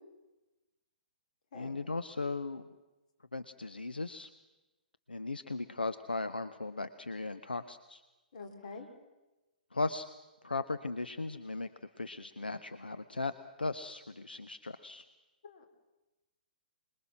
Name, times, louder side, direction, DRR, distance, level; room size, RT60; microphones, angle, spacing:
voice 1, 1.5-2.7 3.3-4.3 5.1-8.0 9.7-10.0 10.4-11.7 12.0-13.3 13.6-15.0, left 3 dB, 75° left, 11 dB, 0.8 m, -37 dB
voice 2, 8.3-8.9 15.4-15.7, left 4 dB, 50° left, 5 dB, 3.3 m, -46 dB
26.5 x 21.0 x 6.2 m, 1.1 s
figure-of-eight pair, 120°, 5 cm